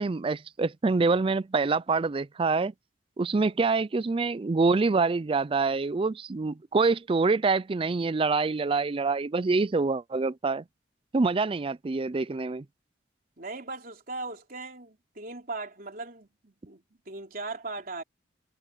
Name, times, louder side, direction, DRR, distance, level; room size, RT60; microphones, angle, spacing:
voice 1, 0.0-2.7 3.2-10.6 11.1-12.6, right 4 dB, 30° right, 0.4 m, -26 dB
voice 2, 13.4-18.0, right 3 dB, 55° right, 3.5 m, -39 dB
head